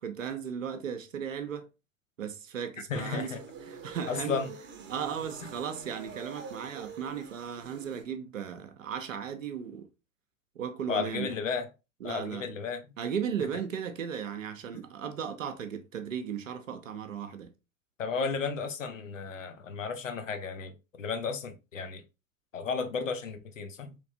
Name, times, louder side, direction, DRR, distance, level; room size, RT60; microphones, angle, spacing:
voice 1, 0.0-1.7 2.2-3.4 3.7-4.4 4.9-9.9 10.6-11.3 12.0-12.4 13.0-17.5, right 7 dB, 85° right, 0.6 m, -36 dB
voice 2, 2.9-3.4 4.1-4.5 10.9-11.7 12.0-12.8 18.0-22.0 22.5-24.0, left 5 dB, 85° left, 0.6 m, -33 dB
sound 1, 2.9-8.0, right 6 dB, 30° right, 0.7 m, -46 dB
3.2 x 2.9 x 2.6 m
figure-of-eight pair, 80°, 38 cm